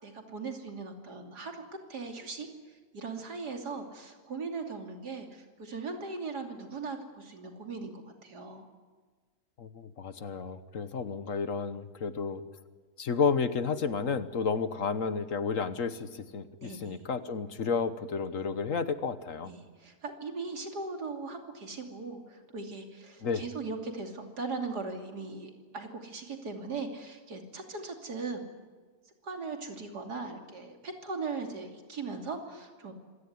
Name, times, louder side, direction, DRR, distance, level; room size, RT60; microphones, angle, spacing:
voice 1, 0.0-1.6 1.9-8.7 16.6-17.0 19.5-28.4 29.2-32.9, right 4 dB, 80° right, 4 dB, 3.4 m, -39 dB
voice 2, 9.6-12.4 13.0-19.5 23.2-23.4, left 5 dB, 55° left, 12 dB, 1.4 m, -31 dB
26.0 x 17.0 x 9.6 m, 1.4 s
omnidirectional pair, 1.7 m